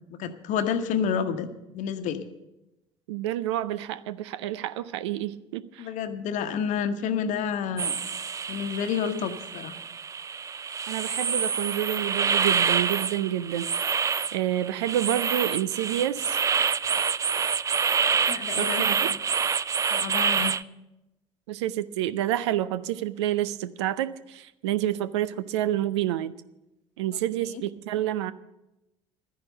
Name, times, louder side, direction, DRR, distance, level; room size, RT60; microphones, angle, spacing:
voice 1, 0.1-1.5 1.7-2.2 5.8-8.0 8.5-9.8 18.3-19.2 19.9-20.5 27.5-27.6, left 7 dB, 55° left, 1.1 m, -29 dB
voice 2, 3.1-5.9 10.9-16.4 18.6-19.1 21.5-26.3 27.0-28.3, right 12 dB, 70° right, 0.5 m, -29 dB
sound 1, 7.8-20.6, right 6 dB, 20° right, 0.4 m, -27 dB
12.5 x 10.5 x 6.7 m
figure-of-eight pair, 60°, 15 cm